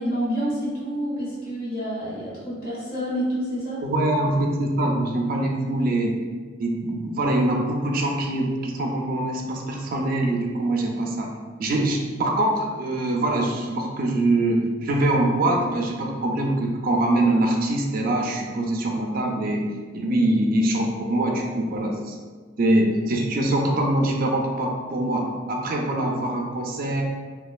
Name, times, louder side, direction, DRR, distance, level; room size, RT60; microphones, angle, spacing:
voice 1, 0.0-3.8, equal, 55° left, -8 dB, 1.2 m, -28 dB
voice 2, 3.8-6.2 6.6-11.3 11.6-19.7 19.9-22.2 22.6-27.0, right 1 dB, 50° right, 0 dB, 0.4 m, -23 dB
3.0 x 2.2 x 2.3 m, 1.5 s
head